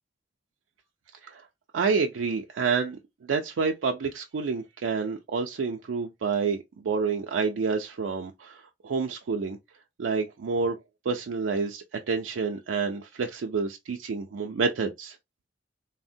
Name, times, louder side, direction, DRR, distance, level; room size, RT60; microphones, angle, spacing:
voice 1, 1.7-3.0 3.3-6.6 6.8-9.6 10.0-10.8 11.1-15.2, right 5 dB, 90° right, 0.4 m, -28 dB
3.4 x 2.0 x 2.5 m
head